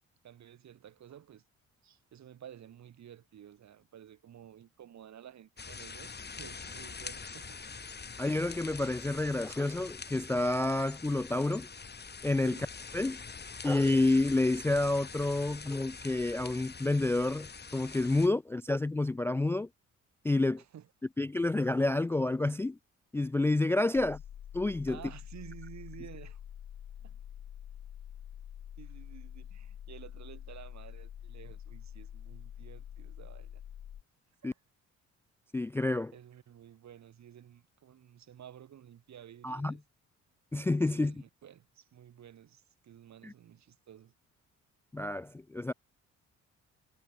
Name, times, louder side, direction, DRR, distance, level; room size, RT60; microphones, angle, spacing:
voice 1, 0.2-1.4 1.8-7.6 12.4-12.7 20.6-20.9 24.9-26.4 27.0-27.2 28.8-33.6 34.4-34.6 36.1-39.8 40.9-44.1, right 10 dB, 65° right, 7.3 m, -52 dB
sound 1, 5.6-18.3, left 5 dB, 35° left, 6.0 m, -45 dB
voice 2, 8.2-11.7 12.2-12.7 12.9-13.2 13.6-19.7 20.2-20.6 21.2-22.8 23.1-24.2 24.5-25.0 34.4-34.5 35.5-36.1 39.4-39.8 40.5-41.2 43.2-43.3 44.9-45.7, left 2 dB, 10° left, 0.3 m, -29 dB
sound 2, 23.9-34.0, left 10 dB, 60° left, 3.1 m, -46 dB
cardioid pair, 90°, 30 cm